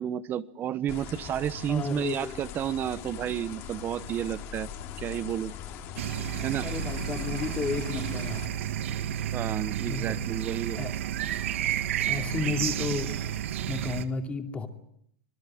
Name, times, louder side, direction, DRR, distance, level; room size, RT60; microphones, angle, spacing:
voice 1, 0.0-4.7 5.0-5.5 6.4-6.7 9.3-10.8, right 10 dB, 30° right, 17 dB, 1.0 m, -31 dB
sound 1, 0.9-8.5, left 8 dB, 45° left, 2.9 m, -41 dB
voice 2, 1.7-2.3 6.6-8.5 9.8-10.3 10.7-10.9 12.1-13.1 13.7-14.7, left 4 dB, 20° left, 5 dB, 2.9 m, -32 dB
sound 2, 6.0-14.0, right 10 dB, 80° right, 1.7 m, -31 dB
26.5 x 19.5 x 7.8 m, 0.71 s
supercardioid pair, 135°, 7 cm